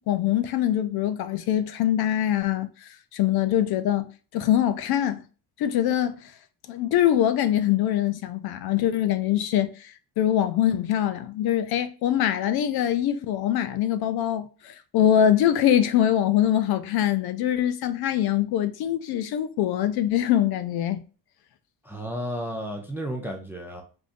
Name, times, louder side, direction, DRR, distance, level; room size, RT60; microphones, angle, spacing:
voice 1, 0.0-5.2 5.6-6.3 6.7-21.0, left 11 dB, 60° left, 0.5 m, -23 dB
voice 2, 21.8-23.8, equal, 5° right, 0.4 m, -32 dB
3.6 x 2.6 x 2.5 m
cardioid pair, 130°, 44 cm